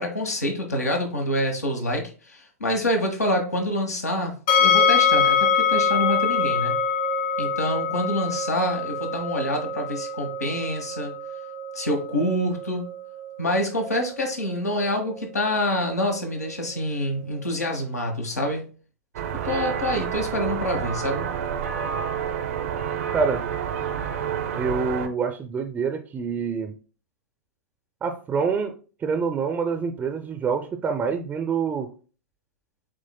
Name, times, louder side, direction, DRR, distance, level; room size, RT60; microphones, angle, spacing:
voice 1, 0.0-4.3 4.6-6.7 7.4-11.1 11.7-12.9 13.4-18.6 19.4-21.3, left 1 dB, 85° left, 2 dB, 1.1 m, -26 dB
sound 1, 4.5-17.5, left 5 dB, 50° left, 1.6 m, -25 dB
sound 2, 19.1-25.1, right 8 dB, 60° right, 0.6 m, -29 dB
voice 2, 24.5-26.7 28.0-28.7 29.0-31.9, right 5 dB, 20° right, 6 dB, 0.5 m, -26 dB
7.5 x 3.1 x 2.2 m, 0.37 s
figure-of-eight pair, 105°, 8 cm